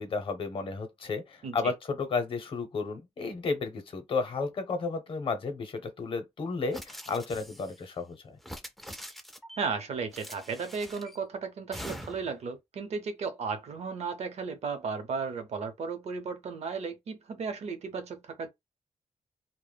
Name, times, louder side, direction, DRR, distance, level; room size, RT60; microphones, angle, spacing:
voice 1, 0.0-8.4, left 4 dB, 50° left, 0.7 m, -33 dB
sound 1, 6.7-7.8 8.4-9.6 10.1-11.2 11.7-12.4, equal, ahead, 0.3 m, -43 dB
voice 2, 9.6-18.5, right 5 dB, 70° right, 0.7 m, -35 dB
2.1 x 2.0 x 3.2 m
wide cardioid pair, 145°, 11 cm